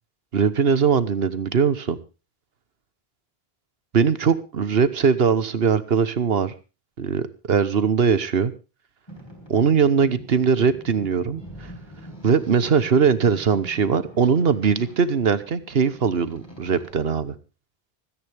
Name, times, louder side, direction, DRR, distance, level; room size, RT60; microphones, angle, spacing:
voice 1, 0.3-2.0 3.9-6.5 7.0-8.5 9.5-11.4 12.2-17.3, right 6 dB, 70° right, 15 dB, 1.3 m, -20 dB
Boat Water vehicle, 9.1-16.9, equal, 25° left, 5.3 m, -44 dB
25.0 x 10.0 x 3.4 m, 0.32 s
omnidirectional pair, 1.0 m